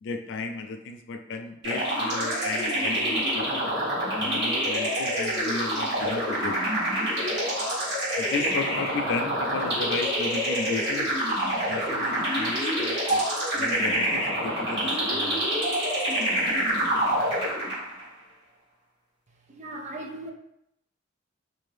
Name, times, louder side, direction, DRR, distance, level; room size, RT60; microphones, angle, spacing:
voice 1, 0.0-3.6 4.2-6.6 8.2-11.1 11.6-13.3 13.5-15.5, left 4 dB, 60° left, 6 dB, 0.3 m, -34 dB
sound 1, 1.6-18.0, right 1 dB, 60° right, 1.2 m, -26 dB
voice 2, 19.5-20.3, right 1 dB, 35° right, 1 dB, 0.4 m, -37 dB
2.7 x 2.6 x 3.2 m, 0.79 s
head